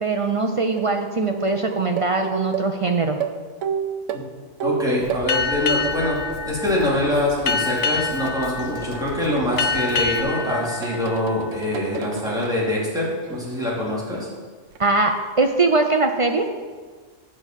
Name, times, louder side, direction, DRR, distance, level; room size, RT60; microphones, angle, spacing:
voice 1, 0.0-3.2 14.8-16.5, right 3 dB, 45° right, 4 dB, 0.4 m, -21 dB
sound 1, 0.8-0.9 1.3-5.3 5.6-6.4 6.7-12.7 13.2-13.6 14.7-14.8, right 7 dB, 75° right, 0.9 m, -32 dB
voice 2, 4.6-6.2 6.5-14.3, left 1 dB, 5° right, -7 dB, 2.8 m, -24 dB
Drum kit, 5.0-10.2, left 5 dB, 80° left, 1.3 m, -40 dB
Boat Water vehicle, 5.3-12.3, left 4 dB, 60° left, 0.6 m, -27 dB
8.4 x 5.0 x 7.4 m, 1.5 s
omnidirectional pair, 1.3 m